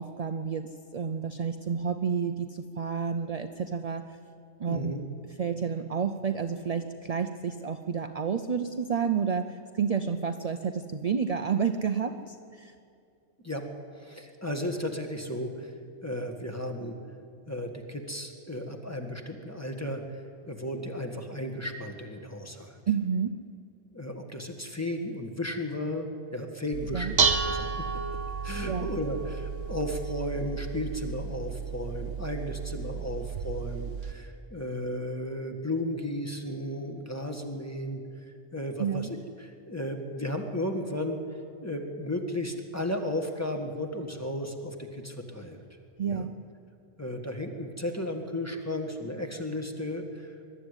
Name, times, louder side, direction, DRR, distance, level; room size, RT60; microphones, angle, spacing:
voice 1, 0.0-4.1 4.6-5.0 5.4-12.7 22.9-23.4 26.9-27.1 28.6-28.9 38.8-39.1 46.0-46.4, right 6 dB, 40° right, 8 dB, 0.6 m, -30 dB
voice 2, 4.7-5.0 13.4-13.7 13.9-15.7 16.0-17.0 17.5-22.8 23.9-27.9 28.4-38.0 38.5-41.2 41.6-45.6 46.1-46.3 47.0-50.6, left 1 dB, 15° left, 4 dB, 1.6 m, -34 dB
Dishes pots and pans, 26.7-34.1, right 5 dB, 80° right, 1.3 m, -32 dB
22.0 x 12.0 x 9.8 m, 2.4 s
omnidirectional pair, 1.3 m